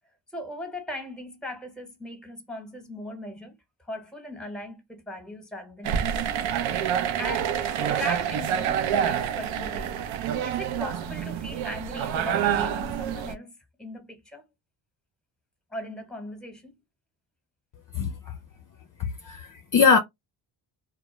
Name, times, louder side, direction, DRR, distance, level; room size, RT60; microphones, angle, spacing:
voice 1, 0.3-3.6 3.9-6.4 7.2-7.6 8.0-13.5 13.8-14.4 15.7-16.7, left 1 dB, ahead, 1.0 m, -38 dB
sound 1, 5.8-13.3, right 9 dB, 70° right, 0.5 m, -27 dB
voice 2, 17.9-18.4 19.0-20.0, left 5 dB, 45° left, 0.5 m, -22 dB
2.1 x 2.0 x 3.0 m
cardioid pair, 70°, 49 cm